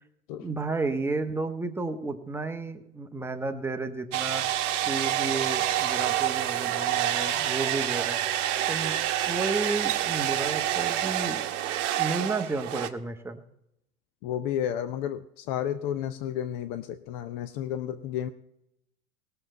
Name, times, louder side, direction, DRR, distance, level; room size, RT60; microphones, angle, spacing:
voice 1, 0.4-4.4 4.9-8.2 8.7-8.9 9.3-11.4 12.0-13.4, right 3 dB, 5° right, 5 dB, 1.0 m, -32 dB
sound 1, 4.1-12.9, right 12 dB, 50° right, 1.1 m, -27 dB
voice 2, 14.2-18.3, left 10 dB, 35° left, 10 dB, 0.7 m, -32 dB
20.0 x 6.9 x 4.4 m, 0.81 s
figure-of-eight pair, 85°, 46 cm